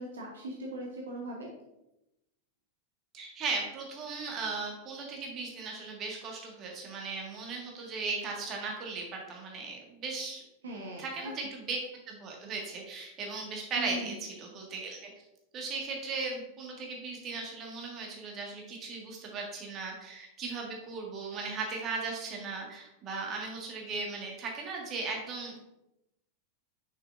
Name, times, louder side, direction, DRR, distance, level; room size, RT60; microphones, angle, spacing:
voice 1, 0.0-1.5 10.6-11.3 13.8-14.2, right 1 dB, 65° right, 0 dB, 0.9 m, -40 dB
voice 2, 3.1-10.4 11.0-11.8 12.1-15.1 15.5-25.7, right 4 dB, 30° right, 0 dB, 1.6 m, -37 dB
6.1 x 6.1 x 2.5 m, 0.89 s
figure-of-eight pair, 90°, 0 cm